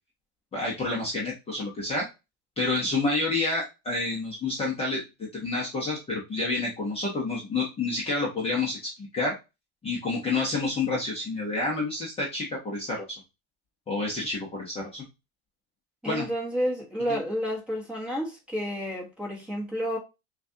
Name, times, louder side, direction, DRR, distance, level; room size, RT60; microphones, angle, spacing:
voice 1, 0.5-2.1 2.6-5.0 5.3-9.4 9.8-13.2 13.9-15.0 16.1-16.3 17.1-17.2, left 3 dB, 20° left, 0.8 m, -29 dB
voice 2, 16.0-20.0, equal, 5° right, 1.2 m, -30 dB
5.9 x 2.4 x 2.7 m
cardioid pair, 180°, 33 cm